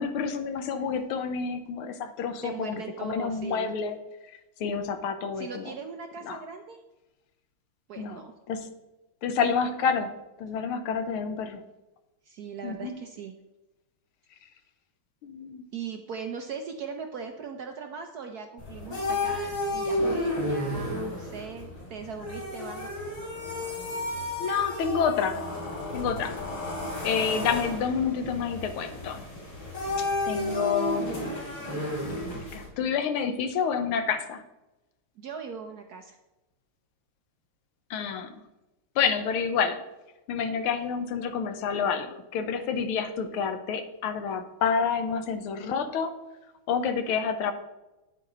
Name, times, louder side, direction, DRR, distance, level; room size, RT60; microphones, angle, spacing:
voice 1, 0.0-4.0 4.3-5.7 6.2-6.4 8.0-8.2 8.5-8.7 9.2-10.1 10.4-11.6 12.6-13.0 15.2-15.6 24.4-25.4 25.9-26.4 27.0-29.3 30.0-31.2 32.2-32.3 32.5-34.4 37.9-38.4 38.9-39.8 40.3-46.1 46.7-47.5, left 6 dB, 85° left, 9 dB, 1.7 m, -29 dB
voice 2, 2.4-3.7 5.4-6.8 7.9-8.3 12.2-13.3 15.7-22.9 35.2-36.2, right 6 dB, 70° right, 5 dB, 0.9 m, -39 dB
sound 1, 18.6-32.7, left 1 dB, 70° left, 4.2 m, -32 dB
9.5 x 8.4 x 3.8 m, 1.0 s
omnidirectional pair, 2.3 m